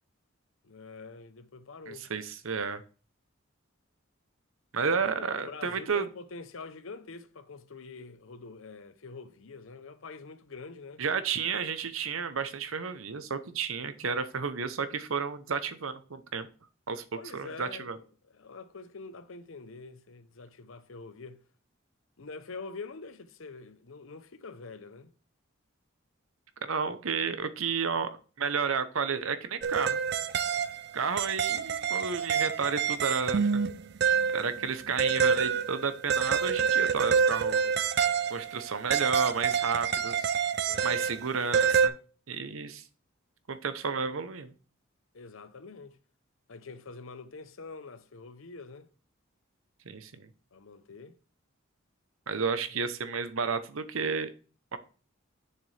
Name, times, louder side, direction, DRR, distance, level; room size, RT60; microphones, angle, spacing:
voice 1, 0.6-2.1 4.8-11.0 17.1-21.4 22.2-25.1 27.6-27.7 40.7-41.0 45.1-46.0 46.5-48.9 50.5-51.2, left 4 dB, 75° left, 0.7 m, -45 dB
voice 2, 1.9-2.8 4.7-6.0 11.0-16.5 16.9-17.0 17.3-18.0 26.6-28.1 28.4-30.0 30.9-33.5 34.3-37.7 38.3-40.4 40.8-41.9 42.3-42.8 43.5-44.5 49.9-50.3 52.3-54.3 54.7-54.8, right 5 dB, 80° right, 0.8 m, -31 dB
sound 1, 29.6-41.9, right 6 dB, 50° right, 0.4 m, -27 dB
6.9 x 6.5 x 3.3 m
head